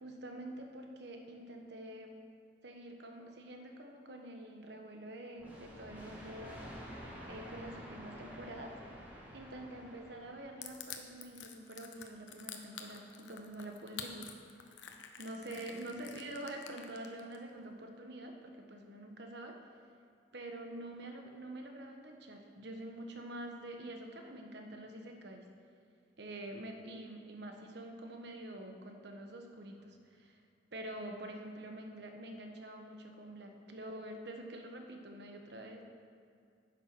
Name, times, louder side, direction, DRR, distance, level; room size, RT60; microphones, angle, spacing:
voice 1, 0.0-2.1 2.6-6.7 7.2-8.7 9.3-14.3 15.2-19.6 20.3-25.4 26.2-30.4 30.7-35.8, right 1 dB, 65° right, 3 dB, 1.3 m, -46 dB
sound 1, 5.4-11.0, equal, 10° right, 2.1 m, -50 dB
Crushing, 10.6-17.4, left 9 dB, 85° left, 0.9 m, -47 dB
10.0 x 7.1 x 6.2 m, 2.4 s
head